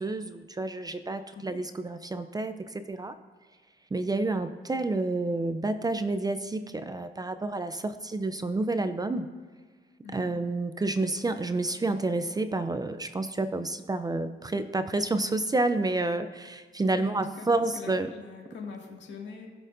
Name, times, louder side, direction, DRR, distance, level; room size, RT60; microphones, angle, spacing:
voice 1, 0.0-3.2 3.9-9.3 10.1-18.1, right 2 dB, 20° right, 10 dB, 0.5 m, -29 dB
voice 2, 16.9-19.5, left 5 dB, 65° left, 0 dB, 2.2 m, -43 dB
19.5 x 6.5 x 2.7 m, 1.5 s
cardioid pair, 90°, 20 cm